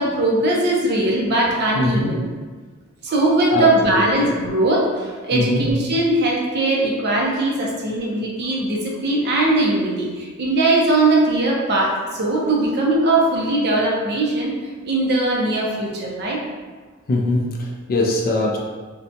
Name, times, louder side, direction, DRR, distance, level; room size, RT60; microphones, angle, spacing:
voice 1, 0.0-2.2 3.0-14.5 14.8-16.4, right 2 dB, 50° right, -3 dB, 0.5 m, -20 dB
voice 2, 1.8-2.1 3.5-4.2 5.3-5.7 17.1-18.6, left 2 dB, 40° left, -1 dB, 0.3 m, -22 dB
2.6 x 2.2 x 2.6 m, 1.4 s
head